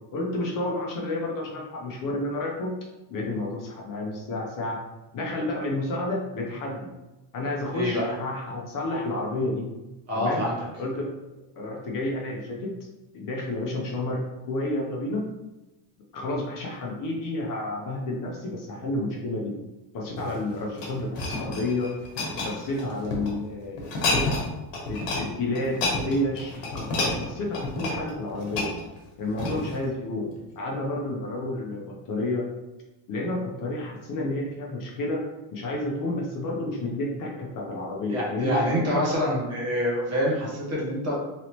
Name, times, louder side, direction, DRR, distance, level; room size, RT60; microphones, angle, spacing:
voice 1, 0.1-2.8 3.1-4.8 5.1-6.9 7.3-9.7 10.1-10.4 10.8-11.1 11.6-12.7 13.1-15.3 16.1-19.6 19.9-21.9 22.4-24.5 24.9-28.7 29.2-30.3 30.6-32.5 33.1-35.2 35.5-38.6, left 2 dB, 50° left, -1 dB, 0.7 m, -30 dB
voice 2, 7.7-8.1 10.1-10.5 38.1-41.1, left 1 dB, 35° right, -5 dB, 1.2 m, -26 dB
sound 1, 20.1-23.3 23.8-24.5 24.7-25.2 25.5-29.8 30.4-30.5, left 2 dB, 80° left, 1.1 m, -29 dB
3.1 x 2.7 x 2.9 m, 1.0 s
cardioid pair, 145°, 44 cm